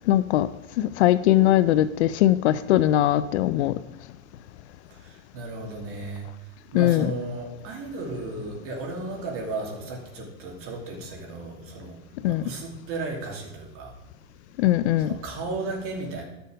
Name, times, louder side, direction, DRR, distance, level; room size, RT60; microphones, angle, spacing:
voice 1, 0.1-0.5 0.8-3.7 6.7-7.1 12.2-12.4 14.6-15.1, left 13 dB, 55° left, 15 dB, 0.5 m, -20 dB
voice 2, 5.3-6.2 6.7-12.0 12.3-13.9 15.0-16.2, right 3 dB, 35° right, 0 dB, 2.6 m, -34 dB
12.0 x 7.0 x 5.0 m, 0.96 s
supercardioid pair, 150°, 41 cm